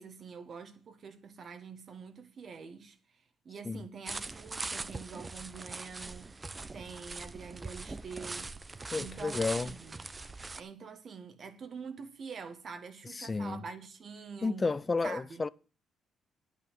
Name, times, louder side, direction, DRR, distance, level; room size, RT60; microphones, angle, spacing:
voice 1, 0.0-3.0 3.4-6.3 6.7-8.6 8.9-10.0 10.5-14.7 15.0-15.4, right 5 dB, 50° right, 1.7 m, -45 dB
sound 1, 4.0-10.6, right 3 dB, 25° right, 0.7 m, -41 dB
voice 2, 8.9-9.7 13.1-13.6 14.4-15.5, left 3 dB, 25° left, 0.6 m, -32 dB
9.9 x 8.2 x 7.4 m
cardioid pair, 90°, 0 cm